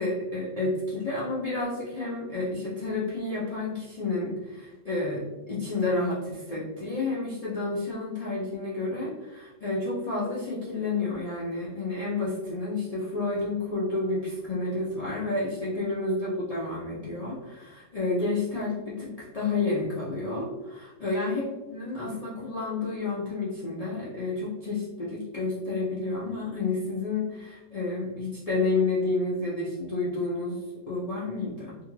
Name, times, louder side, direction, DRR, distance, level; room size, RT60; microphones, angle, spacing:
voice 1, 0.0-31.8, left 3 dB, 80° left, -8 dB, 0.3 m, -30 dB
2.7 x 2.4 x 3.0 m, 1.1 s
omnidirectional pair, 1.6 m